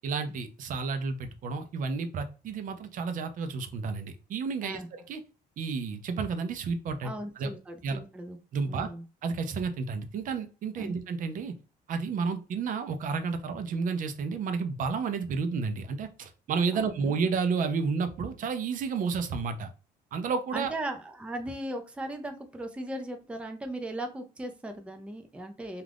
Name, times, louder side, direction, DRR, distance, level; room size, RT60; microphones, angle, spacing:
voice 1, 0.0-5.2 5.6-7.1 7.4-7.5 7.8-8.0 8.5-8.9 9.2-11.5 11.9-19.7 20.1-20.7, right 5 dB, 55° right, 8 dB, 0.6 m, -31 dB
voice 2, 7.0-8.4 8.7-9.0 10.8-11.0 16.7-17.3 20.5-25.8, right 1 dB, 5° right, 5 dB, 0.5 m, -38 dB
2.4 x 2.4 x 3.3 m, 0.33 s
cardioid pair, 110°, 17 cm